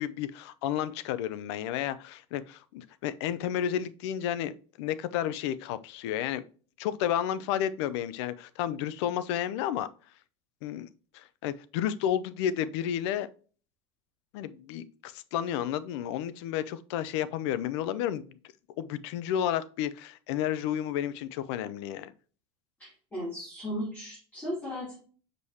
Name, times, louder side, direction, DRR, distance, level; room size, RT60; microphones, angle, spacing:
voice 1, 0.0-4.5 4.8-6.4 6.8-9.9 10.6-10.9 11.1-13.3 14.3-18.4 18.8-22.1, left 10 dB, 90° left, 0.6 m, -31 dB
voice 2, 22.8-24.9, equal, 10° left, 2.9 m, -36 dB
6.4 x 5.3 x 2.8 m
cardioid pair, 180°, 14 cm